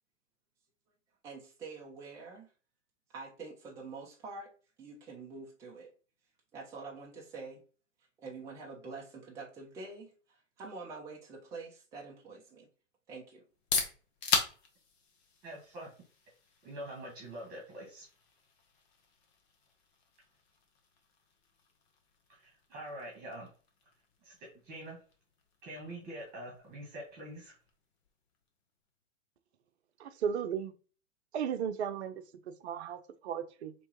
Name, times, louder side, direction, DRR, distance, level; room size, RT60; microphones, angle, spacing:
voice 1, 1.2-2.5 3.1-4.5 4.8-5.9 6.5-7.6 8.2-12.7 13.1-13.4, right 4 dB, 10° right, -2 dB, 0.4 m, -46 dB
sound 1, 13.4-29.1, left 4 dB, 60° left, 1.1 m, -41 dB
voice 2, 15.4-15.9 16.6-18.1 22.3-23.5 24.2-24.3 24.6-25.0 25.6-27.5, right 1 dB, 25° right, -1 dB, 1.4 m, -45 dB
voice 3, 30.0-30.7 31.3-32.2 32.6-33.7, right 8 dB, 60° right, 10 dB, 0.6 m, -35 dB
4.5 x 3.0 x 2.8 m, 0.37 s
hypercardioid pair, 115°, 37 cm